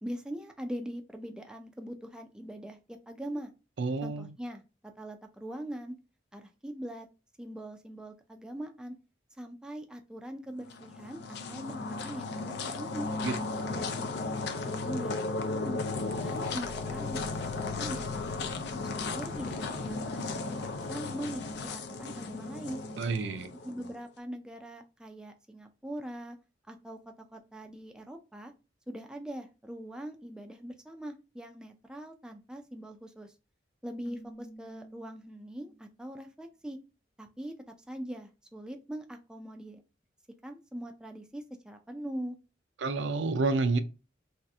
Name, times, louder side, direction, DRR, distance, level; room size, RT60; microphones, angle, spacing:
voice 1, 0.0-3.5 4.0-4.6 5.0-6.0 6.3-7.1 7.4-8.9 9.4-13.1 13.7-14.1 14.7-15.9 16.2-18.5 19.0-22.8 23.6-26.4 26.7-28.5 28.9-33.3 33.8-36.8 37.2-37.5 37.9-39.8 40.4-42.4, right 1 dB, 5° right, 0.3 m, -42 dB
voice 2, 3.8-4.3 13.2-13.4 13.7-13.9 23.0-23.5 42.8-43.8, right 3 dB, 75° right, 0.4 m, -29 dB
sound 1, 10.6-23.9, left 3 dB, 65° left, 0.4 m, -35 dB
sound 2, 15.7-21.7, equal, 10° left, 0.7 m, -49 dB
Keyboard (musical), 34.1-36.0, right 1 dB, 45° left, 1.0 m, -51 dB
2.7 x 2.4 x 3.4 m
head